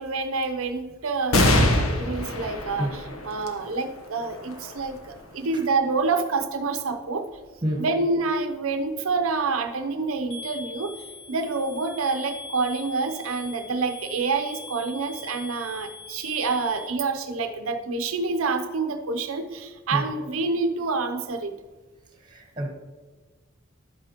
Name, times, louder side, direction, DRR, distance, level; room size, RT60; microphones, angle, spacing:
voice 1, 0.0-7.3 7.8-21.5, right 4 dB, 85° right, 0.7 m, -27 dB
sound 1, 1.3-8.2 8.8-8.9 10.0-10.6, left 1 dB, 90° left, 1.1 m, -27 dB
sound 2, 10.3-16.9, left 3 dB, 65° left, 2.3 m, -41 dB
voice 2, 22.3-22.7, right 1 dB, 20° right, 1.2 m, -27 dB
11.5 x 8.3 x 3.0 m
head